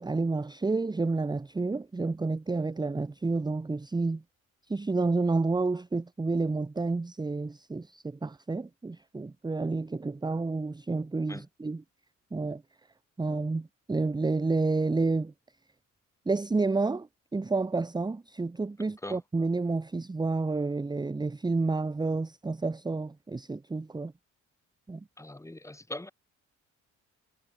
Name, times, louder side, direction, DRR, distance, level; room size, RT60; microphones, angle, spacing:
voice 1, 0.0-4.2 4.7-11.8 12.3-12.6 13.2-15.3 16.3-24.1 24.9-25.0, right 3 dB, 15° right, 0.8 m, -30 dB
voice 2, 25.2-26.1, left 1 dB, 10° left, 2.5 m, -41 dB
cardioid pair, 90°, 30 cm